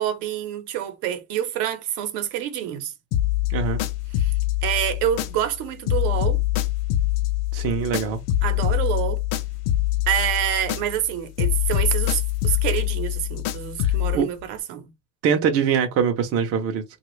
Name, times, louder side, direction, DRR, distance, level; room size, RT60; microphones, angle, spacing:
voice 1, 0.0-2.9 4.2-4.3 4.6-6.4 8.4-9.2 10.1-14.9, right 10 dB, 70° right, 0.9 m, -27 dB
sound 1, 3.1-5.6 5.9-11.1 11.4-14.2, left 14 dB, 60° left, 0.6 m, -24 dB
voice 2, 3.5-3.8 7.5-8.2 13.8-14.3 15.2-16.8, right 7 dB, 40° right, 0.6 m, -23 dB
2.9 x 2.4 x 3.0 m
cardioid pair, 150°, 38 cm